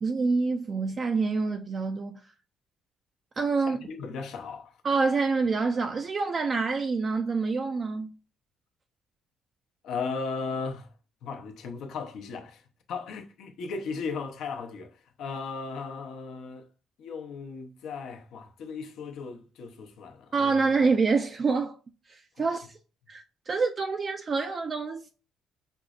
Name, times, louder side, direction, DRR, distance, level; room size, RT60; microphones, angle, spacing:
voice 1, 0.0-2.2 3.4-3.8 4.8-8.1 20.3-21.8 22.1-22.8 23.1-25.1, right 4 dB, 40° right, 0.3 m, -27 dB
voice 2, 3.7-4.8 9.8-10.9 11.2-12.6 12.9-16.7 17.0-20.7, left 4 dB, 75° left, 0.7 m, -36 dB
5.2 x 2.0 x 2.3 m
cardioid pair, 85°, 0 cm